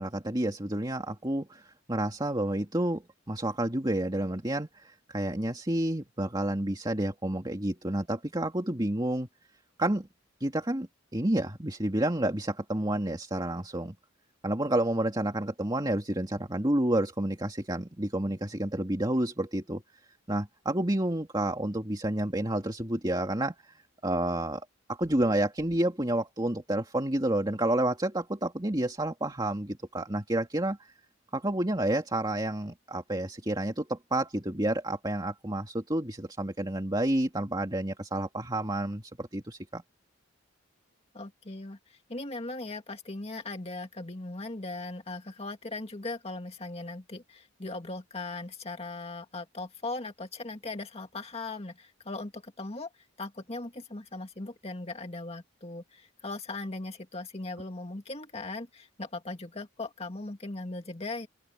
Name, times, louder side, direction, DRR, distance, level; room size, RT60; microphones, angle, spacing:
voice 1, 0.0-9.3 9.8-10.1 10.4-13.9 14.4-19.8 20.3-23.7 24.0-24.6 24.9-30.8 31.3-39.8, right 1 dB, 20° right, 2.4 m, -30 dB
voice 2, 41.1-52.9 53.2-61.3, left 2 dB, 30° left, 2.2 m, -39 dB
open air
head